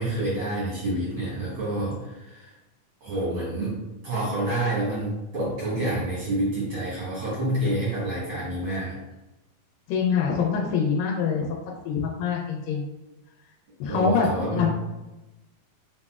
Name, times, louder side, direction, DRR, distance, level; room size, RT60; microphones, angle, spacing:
voice 1, 0.0-2.5 3.0-9.0 13.8-14.7, right 1 dB, 75° right, -8 dB, 1.2 m, -28 dB
voice 2, 9.9-12.9 13.8-14.7, left 6 dB, 90° left, -1 dB, 2.2 m, -25 dB
5.7 x 2.1 x 2.3 m, 1.0 s
omnidirectional pair, 3.8 m